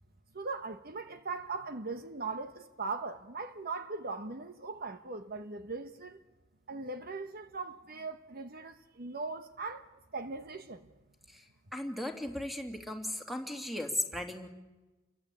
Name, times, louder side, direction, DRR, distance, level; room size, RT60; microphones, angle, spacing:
voice 1, 0.3-6.2 6.7-9.9 10.1-10.8, right 3 dB, 45° right, 1.2 m, -39 dB
voice 2, 11.7-14.5, left 1 dB, ahead, 2.8 m, -36 dB
29.5 x 24.0 x 8.5 m
head